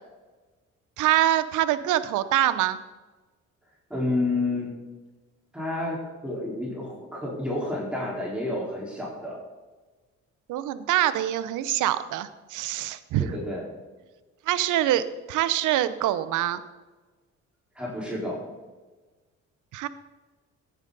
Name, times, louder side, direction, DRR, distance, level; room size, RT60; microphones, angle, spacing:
voice 1, 1.0-2.8 10.5-13.3 14.5-16.6 19.7-19.9, right 13 dB, 90° right, 14 dB, 0.8 m, -25 dB
voice 2, 3.9-4.8 5.5-6.0 6.2-9.4 13.2-13.7 17.7-18.4, left 2 dB, 5° right, -5 dB, 4.5 m, -30 dB
15.0 x 9.0 x 4.1 m, 1.3 s
cardioid pair, 90°, 30 cm